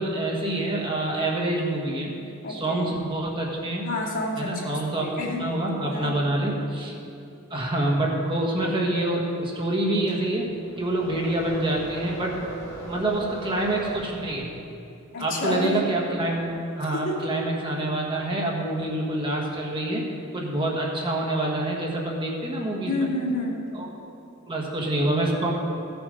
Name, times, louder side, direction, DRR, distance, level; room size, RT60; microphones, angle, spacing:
voice 1, 0.0-2.1 2.5-3.8 4.4-5.0 5.4-6.9 7.5-10.5 10.8-12.4 12.9-14.5 15.2-20.0 20.3-23.1 23.7-23.9 24.5-25.5, right 1 dB, 25° right, -2 dB, 1.4 m, -26 dB
voice 2, 2.4-2.9 3.8-5.4 5.9-6.1 15.1-15.8 16.9-17.3 22.9-23.7, left 1 dB, 65° left, -6 dB, 2.5 m, -29 dB
sound 1, 10.1-14.6, right 1 dB, 15° left, 2.9 m, -40 dB
15.0 x 7.0 x 5.3 m, 2.6 s
head